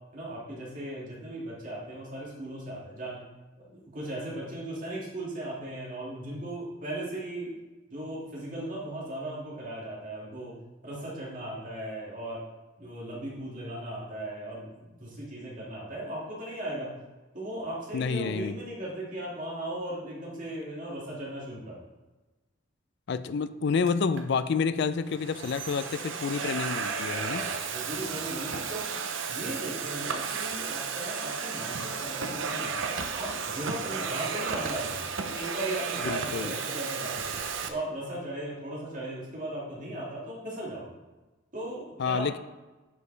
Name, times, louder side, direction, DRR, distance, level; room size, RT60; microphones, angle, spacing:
voice 1, 0.1-3.2 3.6-7.5 7.9-10.5 10.8-12.4 12.8-16.9 17.3-21.8 27.3-28.9 29.3-32.8 33.1-34.9 35.3-37.2 37.7-41.0 41.5-42.3, right 1 dB, 45° right, -6 dB, 2.1 m, -37 dB
voice 2, 17.9-18.6 23.1-27.5 36.0-36.6 42.0-42.4, left 5 dB, 60° left, 14 dB, 0.4 m, -29 dB
Domestic sounds home sounds, 23.9-24.2 25.0-37.7, right 5 dB, 70° right, 0.7 m, -33 dB
9.5 x 5.0 x 3.3 m, 1.1 s
head